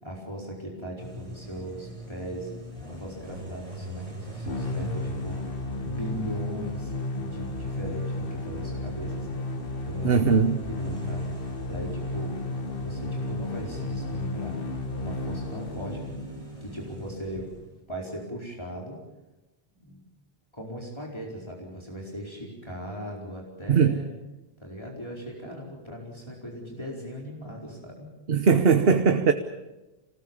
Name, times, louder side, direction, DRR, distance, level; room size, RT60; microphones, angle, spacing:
voice 1, 0.0-2.5 2.9-5.4 5.8-9.4 9.9-10.4 10.7-14.6 15.0-16.1 16.6-17.5 17.9-19.0 19.8-20.0 20.5-24.1 24.6-28.1, equal, 25° left, -3 dB, 4.7 m, -38 dB
sound 1, 1.0-17.8, right 1 dB, 30° right, 6.6 m, -42 dB
sound 2, 4.5-16.4, left 2 dB, 65° left, 1.4 m, -33 dB
voice 2, 10.0-10.6 23.7-23.9 28.3-29.3, right 6 dB, 70° right, 8 dB, 1.3 m, -20 dB
26.5 x 20.0 x 7.3 m, 1.0 s
omnidirectional pair, 1.0 m